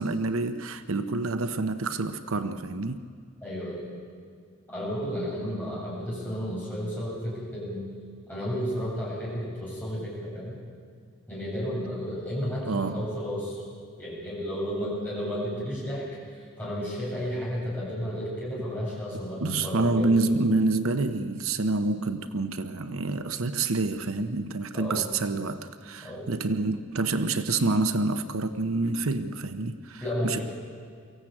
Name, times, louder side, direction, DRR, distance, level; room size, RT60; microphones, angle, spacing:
voice 1, 0.0-3.0 12.7-13.1 19.4-30.4, right 3 dB, 75° right, 9 dB, 0.9 m, -27 dB
voice 2, 3.4-3.9 4.7-7.8 8.3-10.6 11.3-13.6 14.0-16.1 16.6-20.3 24.7-25.1 26.0-26.3 30.0-30.4, equal, 10° left, -7 dB, 7.8 m, -32 dB
23.5 x 15.0 x 8.7 m, 2.2 s
head